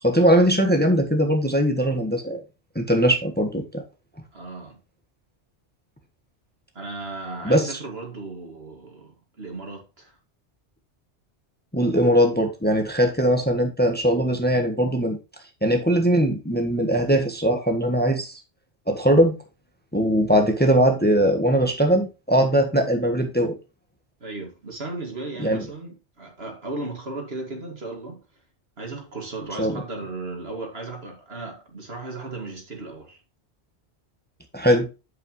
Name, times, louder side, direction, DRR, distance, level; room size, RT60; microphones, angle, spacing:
voice 1, 0.0-2.4 2.7-3.8 7.4-7.8 11.7-15.2 15.6-18.4 18.9-19.3 19.9-23.6 25.4-25.6 29.6-29.8 34.5-34.9, equal, 10° left, 1.4 m, -20 dB
voice 2, 4.3-4.8 6.7-10.2 24.2-28.2 28.8-33.2, right 3 dB, 65° right, 2.7 m, -35 dB
8.5 x 7.6 x 3.1 m
omnidirectional pair, 1.1 m